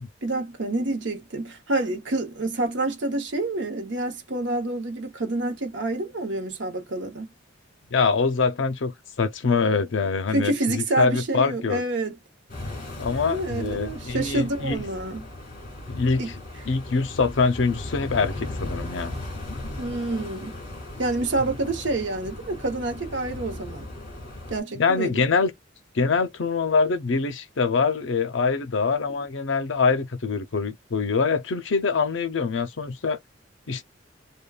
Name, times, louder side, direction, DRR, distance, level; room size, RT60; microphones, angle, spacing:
voice 1, 0.2-7.3 10.3-12.2 13.1-15.2 16.2-16.3 19.8-20.6 21.0-23.9 24.5-25.2, right 2 dB, 65° right, 0.8 m, -28 dB
voice 2, 7.9-11.8 13.0-14.8 15.9-16.3 16.7-19.1 24.8-25.5 25.9-33.2 33.7-33.8, left 4 dB, 75° left, 0.6 m, -24 dB
sound 1, 12.5-24.6, left 2 dB, 45° left, 1.7 m, -37 dB
3.3 x 2.2 x 2.3 m
head